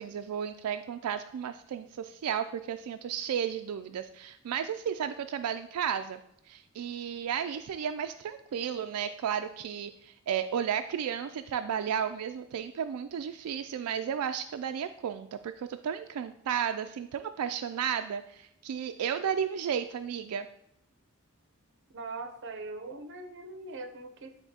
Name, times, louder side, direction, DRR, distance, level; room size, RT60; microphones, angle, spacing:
voice 1, 0.0-6.2 6.5-20.5, right 8 dB, 90° right, 8 dB, 0.3 m, -33 dB
voice 2, 21.9-24.4, right 3 dB, 55° right, 7 dB, 0.7 m, -41 dB
10.0 x 3.5 x 2.8 m, 0.78 s
head